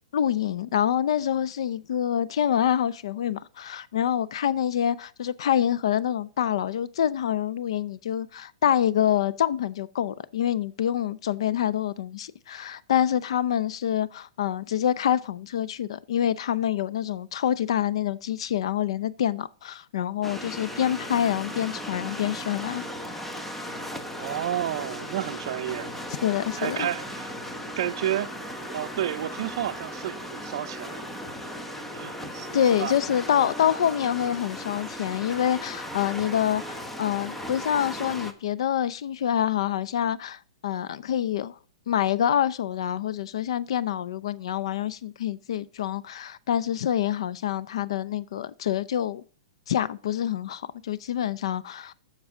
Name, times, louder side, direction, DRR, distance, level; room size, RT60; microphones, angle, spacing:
voice 1, 0.1-22.9 26.2-26.9 32.5-41.5 41.9-49.2 49.7-51.9, left 10 dB, 70° left, 0.6 m, -26 dB
sound 1, 20.2-38.3, equal, 5° left, 1.0 m, -37 dB
sound 2, 23.8-33.6, right 6 dB, 15° right, 1.9 m, -51 dB
voice 2, 24.2-25.9 26.6-27.3 27.8-28.3 28.7-31.1 31.9-32.9, right 12 dB, 60° right, 0.6 m, -31 dB
14.0 x 4.8 x 3.7 m
hypercardioid pair, 140°, 3 cm